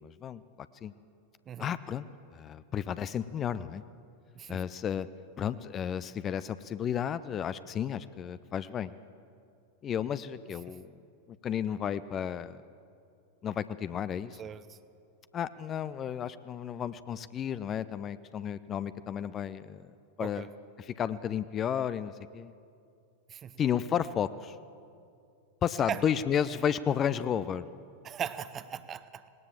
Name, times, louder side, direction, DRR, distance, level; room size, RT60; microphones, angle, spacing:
voice 1, 0.0-0.4 0.8-0.9 1.6-2.1 2.3-3.8 4.5-5.1 5.4-8.9 9.8-10.9 11.3-12.6 13.4-14.4 15.3-19.8 20.2-20.5 21.0-22.5 23.6-24.6 25.6-27.6, left 8 dB, 25° left, 15 dB, 0.5 m, -32 dB
voice 2, 14.4-14.8 20.2-20.5 23.3-23.5 25.8-26.0 28.0-29.2, right 9 dB, 25° right, 14 dB, 0.8 m, -38 dB
19.0 x 18.5 x 7.4 m, 2.4 s
figure-of-eight pair, 90°, 0 cm